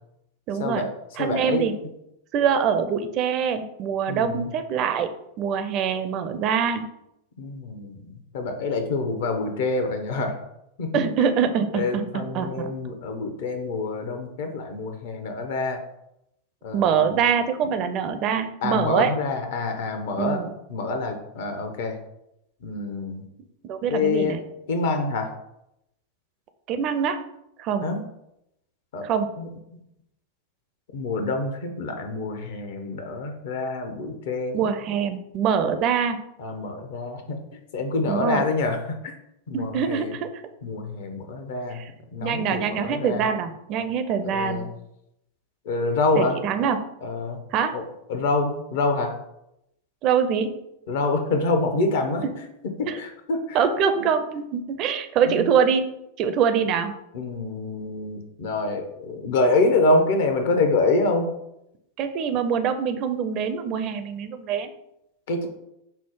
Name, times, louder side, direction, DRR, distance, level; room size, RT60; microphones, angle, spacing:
voice 1, 0.5-0.9 1.1-1.7 2.3-5.1 5.4-6.8 10.9-12.7 16.7-19.1 20.2-20.5 23.6-24.4 26.7-27.2 27.6-27.9 29.0-29.3 34.5-36.2 38.1-38.4 39.5-40.3 41.7-41.9 42.2-44.7 46.2-46.8 47.5-47.8 50.0-50.6 52.2-52.4 52.9-53.0 53.5-56.9 62.0-64.7, right 7 dB, 40° right, 8 dB, 0.4 m, -24 dB
voice 2, 1.2-1.6 4.1-4.4 7.4-7.9 8.3-10.3 10.8-11.0 11.7-15.8 16.6-17.1 18.6-20.4 20.7-22.0 22.6-23.2 23.9-24.3 24.7-25.3 27.8-28.0 28.9-29.0 29.4-29.5 30.9-34.6 36.4-37.4 37.7-38.8 39.0-39.1 39.5-40.1 40.6-41.8 42.1-43.3 44.2-44.7 45.7-46.3 47.0-47.4 47.7-47.8 48.1-49.1 50.9-52.2 53.0-53.4 55.2-55.5 57.1-61.3 65.3-65.5, left 3 dB, 55° left, 5 dB, 0.8 m, -26 dB
5.5 x 2.0 x 4.7 m, 0.83 s
figure-of-eight pair, 90°, 0 cm